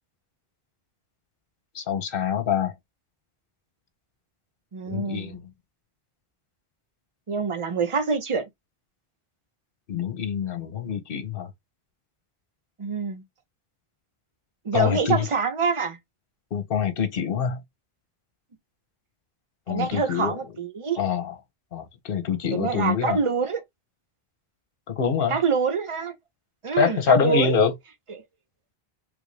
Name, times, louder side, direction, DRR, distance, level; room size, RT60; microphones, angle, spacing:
voice 1, 1.7-2.7 4.9-5.4 9.9-11.5 14.7-15.2 16.5-17.6 19.7-20.4 21.0-21.3 21.7-23.2 24.9-25.4 26.8-27.7, left 7 dB, 65° left, 1.0 m, -25 dB
voice 2, 4.7-5.4 7.3-8.4 12.8-13.2 14.6-16.0 19.7-21.0 22.5-23.6 25.3-26.1 26.6-27.6, right 5 dB, 35° right, 0.7 m, -26 dB
3.4 x 2.5 x 3.2 m
omnidirectional pair, 1.0 m